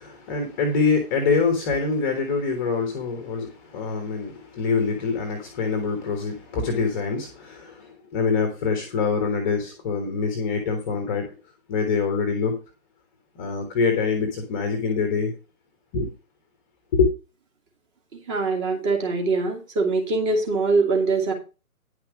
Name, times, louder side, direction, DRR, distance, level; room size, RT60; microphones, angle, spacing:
voice 1, 0.0-11.3 11.7-12.6 13.3-15.3 15.9-16.1 16.9-17.1, left 4 dB, 15° left, 1.3 m, -25 dB
voice 2, 18.1-21.3, right 3 dB, 20° right, 2.4 m, -23 dB
10.0 x 5.8 x 5.0 m
figure-of-eight pair, 140°, 43 cm